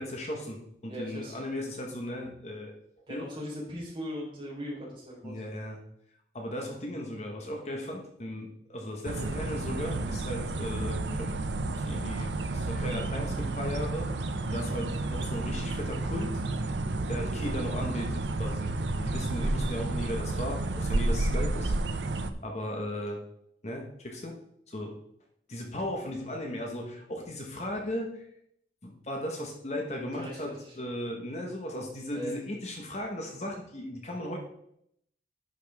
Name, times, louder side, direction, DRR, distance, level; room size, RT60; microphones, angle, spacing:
voice 1, 0.0-2.8 3.1-3.3 5.2-5.8 6.3-11.3 11.8-16.4 17.1-18.7 19.0-22.1 22.4-23.2 23.6-24.4 24.7-25.0 25.5-28.3 28.8-34.4, left 1 dB, 40° left, 1 dB, 1.2 m, -36 dB
voice 2, 0.9-1.4 3.1-5.3 19.4-19.5 30.1-30.7 32.1-32.4, equal, 25° right, -5 dB, 3.8 m, -39 dB
sound 1, 9.0-22.3, right 2 dB, 90° right, 0.7 m, -31 dB
10.5 x 6.4 x 3.5 m, 0.73 s
head